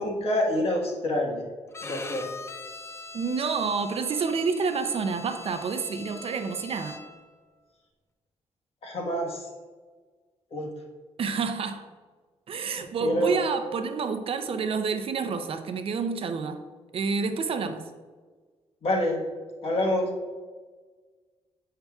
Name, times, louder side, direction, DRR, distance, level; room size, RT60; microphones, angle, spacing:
voice 1, 0.0-1.5 1.8-2.3 8.8-9.5 10.5-10.7 13.0-13.4 18.8-19.2 19.6-20.1, left 1 dB, 55° left, -1 dB, 1.3 m, -27 dB
Bowed string instrument, 1.7-7.3, left 3 dB, 25° left, 0.4 m, -42 dB
voice 2, 3.1-7.0 11.2-11.9 12.5-16.6 16.9-17.9, right 5 dB, 55° right, 8 dB, 0.5 m, -29 dB
7.9 x 5.5 x 2.3 m, 1.4 s
cardioid pair, 120°, 12 cm